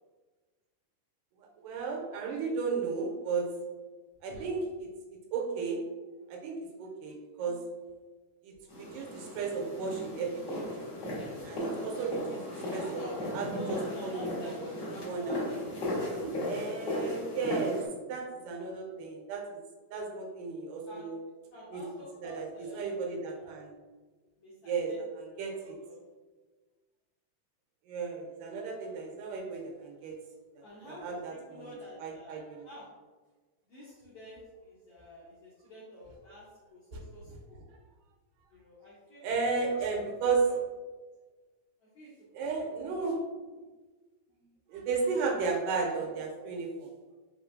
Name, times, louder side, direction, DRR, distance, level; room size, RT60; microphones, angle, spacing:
voice 1, 1.6-3.5 4.2-4.9 5.3-5.8 6.3-7.6 8.4-10.7 11.4-13.0 13.3-13.6 14.0-14.5 14.9-15.4 16.2-17.8 18.1-19.4 19.9-21.2 21.7-21.8 22.2-23.7 24.6-24.9 25.4-25.8 27.9-30.2 30.9-32.7 39.2-40.5 42.3-43.2 44.7-46.9, right 4 dB, 85° right, 0 dB, 2.3 m, -34 dB
sound 1, 8.7-17.9, left 1 dB, 50° left, 1.3 m, -36 dB
voice 2, 12.7-16.2 20.9-21.1 21.5-22.9 23.3-23.6 24.4-25.0 25.6-26.0 30.6-31.2 31.5-32.9 33.7-37.6 38.5-39.3 39.7-40.1 40.5-40.6 41.9-42.1 42.4-42.5, left 1 dB, 70° left, -8 dB, 1.4 m, -48 dB
5.0 x 3.1 x 2.6 m, 1.3 s
omnidirectional pair, 3.7 m